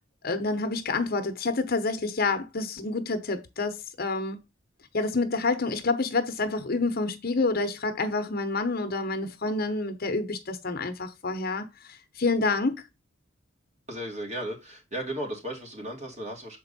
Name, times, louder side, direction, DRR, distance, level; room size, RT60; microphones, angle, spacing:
voice 1, 0.2-4.4 4.9-12.8, left 3 dB, 50° left, 0.9 m, -28 dB
voice 2, 13.9-16.6, right 1 dB, 35° right, 2.4 m, -35 dB
6.7 x 4.5 x 4.1 m
head